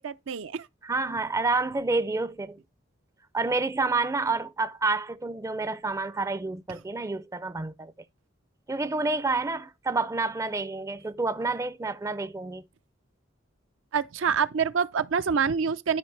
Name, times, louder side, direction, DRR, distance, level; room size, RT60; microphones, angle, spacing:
voice 1, 0.0-0.7 13.9-16.0, right 6 dB, 80° right, 0.5 m, -26 dB
voice 2, 0.8-2.6 3.3-7.9 8.7-12.6, right 3 dB, 15° right, 0.4 m, -29 dB
12.5 x 4.9 x 3.3 m
head